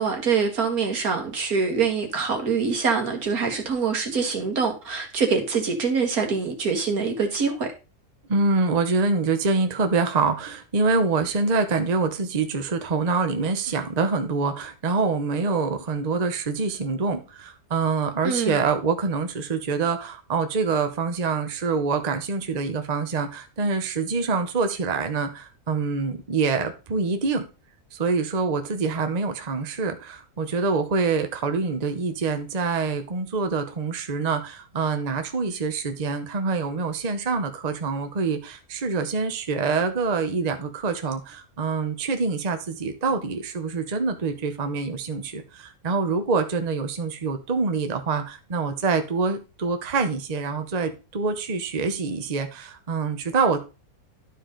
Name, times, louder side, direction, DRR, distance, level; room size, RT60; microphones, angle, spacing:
voice 1, 0.0-7.7 18.2-18.6, right 5 dB, 75° right, 2.1 m, -24 dB
voice 2, 8.3-27.4 27.9-53.6, right 4 dB, 35° right, 0.8 m, -25 dB
12.0 x 4.8 x 3.8 m
omnidirectional pair, 1.6 m